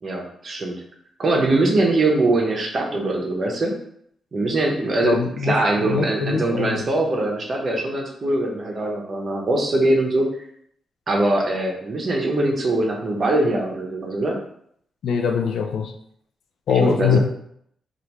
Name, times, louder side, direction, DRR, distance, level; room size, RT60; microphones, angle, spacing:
voice 1, 0.0-0.8 1.2-3.7 4.3-10.3 11.1-14.4 16.7-17.2, right 2 dB, 40° right, 0 dB, 0.7 m, -22 dB
voice 2, 5.0-6.9 15.0-15.9 16.7-17.2, left 6 dB, 80° left, 6 dB, 0.4 m, -22 dB
3.3 x 2.4 x 2.9 m, 0.68 s
wide cardioid pair, 135°, 0 cm